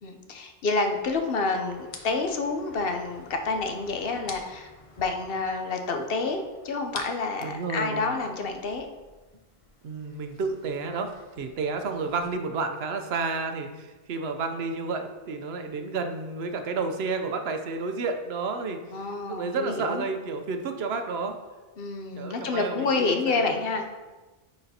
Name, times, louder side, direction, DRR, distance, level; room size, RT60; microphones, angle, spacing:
voice 1, 0.0-4.7 5.0-8.9 18.9-20.1 21.8-23.8, left 3 dB, 65° left, 4 dB, 0.9 m, -28 dB
sound 1, 0.9-12.3, left 3 dB, 40° left, 0.7 m, -49 dB
voice 2, 7.4-8.1 9.8-11.1 11.4-18.8 19.3-21.4 22.2-23.6, right 4 dB, 80° right, 6 dB, 0.9 m, -31 dB
9.6 x 4.2 x 2.8 m, 1.2 s
omnidirectional pair, 1.0 m